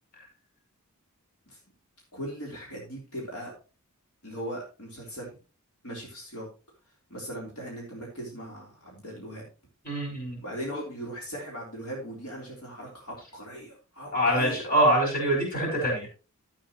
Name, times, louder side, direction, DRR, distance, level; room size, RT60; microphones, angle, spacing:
voice 1, 2.1-3.5 4.2-5.4 5.8-6.5 7.1-9.4 10.4-14.6, equal, 80° left, -2 dB, 3.4 m, -39 dB
voice 2, 9.8-10.4 14.1-16.1, right 1 dB, 40° left, 0 dB, 5.2 m, -24 dB
12.0 x 8.5 x 3.0 m, 0.33 s
head